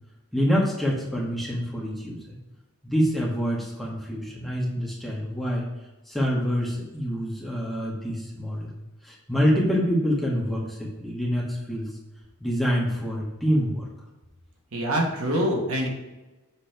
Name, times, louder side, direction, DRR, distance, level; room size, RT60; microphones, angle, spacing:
voice 1, 0.3-2.4 2.8-5.6 6.1-8.7 9.0-11.9 12.4-13.9, equal, ahead, -5 dB, 1.6 m, -26 dB
voice 2, 14.7-15.9, equal, 75° right, -1 dB, 1.5 m, -25 dB
7.2 x 3.7 x 4.6 m, 1.1 s
head